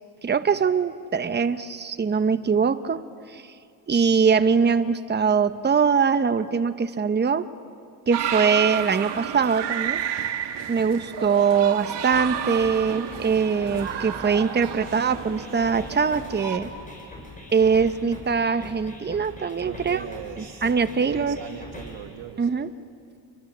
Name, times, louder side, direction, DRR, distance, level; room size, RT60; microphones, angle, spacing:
voice 1, 0.2-3.0 3.3-3.4 3.9-7.5 8.1-10.0 10.7-16.7 17.5-20.1 20.4-21.4 22.4-22.7, right 6 dB, 25° right, 10 dB, 1.1 m, -22 dB
sound 1, 8.1-16.6, right 9 dB, 65° right, 2.0 m, -31 dB
sound 2, 12.1-22.1, left 1 dB, 15° left, 8.0 m, -42 dB
voice 2, 19.6-20.7 21.0-22.5, right 10 dB, 85° right, 1 dB, 1.8 m, -39 dB
29.0 x 24.0 x 7.5 m, 2.3 s
cardioid pair, 95°, 45 cm